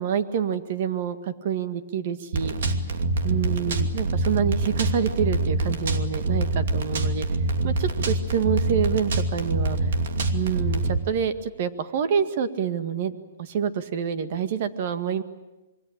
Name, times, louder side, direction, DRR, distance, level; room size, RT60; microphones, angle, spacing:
voice 1, 0.0-2.6 3.2-7.3 7.6-9.8 10.3-13.1 13.4-15.2, right 8 dB, 50° right, 10 dB, 1.9 m, -27 dB
sound 1, 2.3-11.0, right 2 dB, 70° right, 2.6 m, -25 dB
26.5 x 23.0 x 8.8 m, 1.0 s
hypercardioid pair, 155°, 0 cm